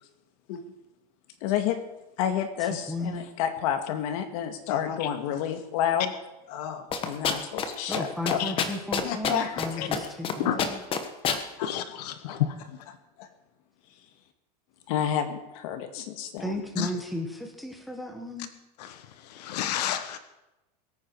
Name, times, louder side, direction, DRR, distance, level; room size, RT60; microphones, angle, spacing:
voice 1, 1.4-1.8 2.2-6.1 6.5-8.4 9.0-10.0 10.4-10.6 11.3-11.7 12.3-12.4 13.2-13.3 14.9-16.4, left 9 dB, 55° left, 7 dB, 1.9 m, -30 dB
voice 2, 2.6-3.2 7.9-10.8 16.4-18.5, left 1 dB, ahead, 3 dB, 1.5 m, -34 dB
sound 1, 6.9-7.7 7.9-8.0 8.3-9.7 9.9-10.3 10.6-11.4, left 7 dB, 25° left, 1.3 m, -26 dB
voice 3, 10.4-10.7 11.6-12.6 16.8-16.9 18.8-20.2, left 11 dB, 75° left, 10 dB, 1.3 m, -30 dB
22.5 x 9.4 x 4.7 m, 0.97 s
supercardioid pair, 160°, 21 cm